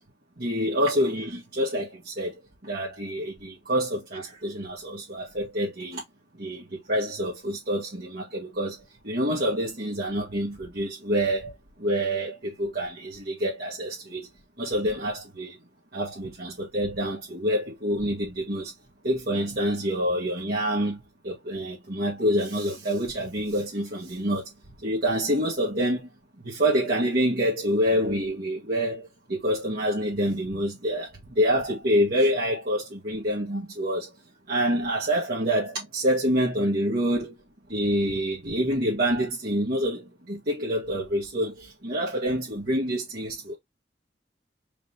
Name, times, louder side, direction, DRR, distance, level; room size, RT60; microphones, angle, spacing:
voice 1, 0.4-2.3 2.6-6.0 6.4-8.8 9.0-11.5 11.8-14.3 14.6-15.6 15.9-18.7 19.0-24.5 24.8-26.1 26.4-31.1 31.4-34.1 34.5-37.4 37.7-43.5, equal, 55° right, 1.7 m, -27 dB
5.0 x 2.9 x 3.3 m
head